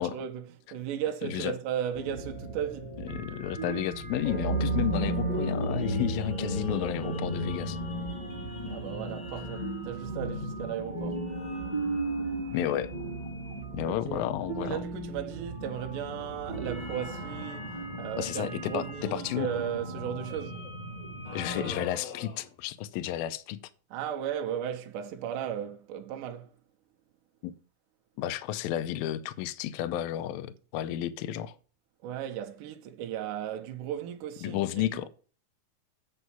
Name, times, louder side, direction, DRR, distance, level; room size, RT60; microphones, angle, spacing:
voice 1, 0.0-3.0 8.6-11.3 13.8-14.3 14.6-20.7 23.9-26.5 32.0-35.1, right 9 dB, 75° right, 2.1 m, -36 dB
voice 2, 1.2-1.5 3.1-7.8 12.5-12.9 13.7-14.8 18.2-18.9 19.1-19.5 21.3-23.6 27.4-27.5 28.2-31.5 34.4-35.1, left 12 dB, 80° left, 2.4 m, -32 dB
sound 1, 1.9-21.8, right 2 dB, 30° left, 0.8 m, -35 dB
sound 2, 21.3-22.6, left 6 dB, 55° left, 1.9 m, -41 dB
8.1 x 5.4 x 5.8 m
omnidirectional pair, 4.4 m